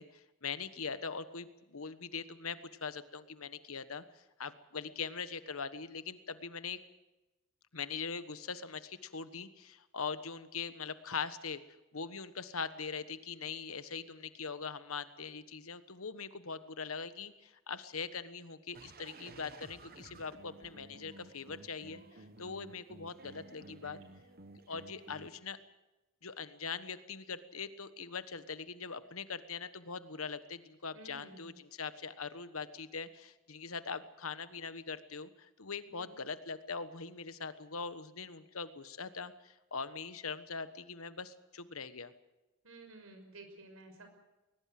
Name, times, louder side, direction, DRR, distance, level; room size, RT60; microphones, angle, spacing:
voice 1, 0.0-6.8 7.7-11.6 11.9-22.0 22.4-24.0 24.7-25.6 26.2-42.1, left 5 dB, 75° left, 13 dB, 1.3 m, -42 dB
sound 1, 18.7-25.3, right 2 dB, 50° right, 1.5 m, -54 dB
voice 2, 30.9-31.5 35.9-36.1 42.6-44.1, right 2 dB, 75° right, 6 dB, 5.9 m, -52 dB
21.0 x 20.0 x 7.7 m, 1.0 s
head